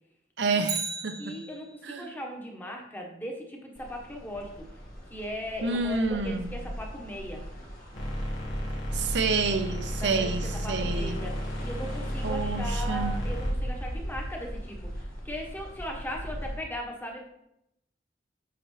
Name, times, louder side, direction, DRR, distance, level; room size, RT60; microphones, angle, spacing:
voice 1, 0.4-1.4 1.8-2.1 5.6-6.6 8.9-11.3 12.2-13.2, right 4 dB, 70° right, 8 dB, 0.8 m, -29 dB
Bicycle, 0.6-2.0 10.3-10.4, right 5 dB, 20° right, 1.0 m, -36 dB
voice 2, 1.2-4.5 5.1-7.4 10.0-10.3 10.6-14.9 15.2-17.3, equal, 10° left, 0 dB, 1.3 m, -38 dB
sound 1, 3.7-16.6, equal, 55° left, 1.9 m, -38 dB
sound 2, 7.9-13.5, equal, 75° left, 1.6 m, -33 dB
7.9 x 5.9 x 3.3 m, 0.79 s
head